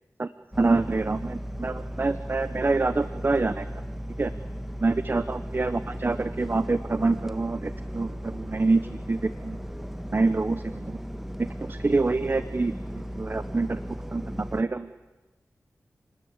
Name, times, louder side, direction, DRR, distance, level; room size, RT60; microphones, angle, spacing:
sound 1, 0.5-14.6, equal, 5° right, 1.6 m, -36 dB
voice 1, 0.6-3.7 4.2-4.3 4.8-8.8 9.1-9.6 10.1-11.0 11.6-12.7 13.1-13.8 14.1-14.9, right 3 dB, 40° right, 12 dB, 1.0 m, -26 dB
28.5 x 20.0 x 8.2 m, 1.2 s
wide cardioid pair, 70°, 6 cm